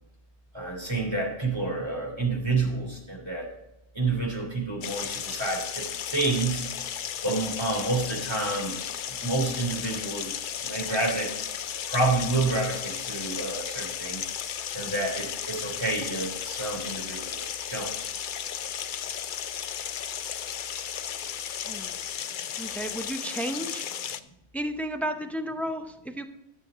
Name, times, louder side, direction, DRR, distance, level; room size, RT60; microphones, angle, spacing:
voice 1, 0.5-3.5 3.9-6.6 7.2-8.8 9.1-10.3 10.6-11.3 11.9-14.2 14.7-17.9, right 3 dB, 20° right, -1 dB, 3.0 m, -29 dB
sound 1, 4.8-24.2, left 9 dB, 55° left, 0.6 m, -34 dB
voice 2, 21.7-22.0 22.6-23.8 24.5-26.3, equal, ahead, 6 dB, 0.4 m, -33 dB
12.0 x 7.0 x 3.6 m, 0.91 s
omnidirectional pair, 1.2 m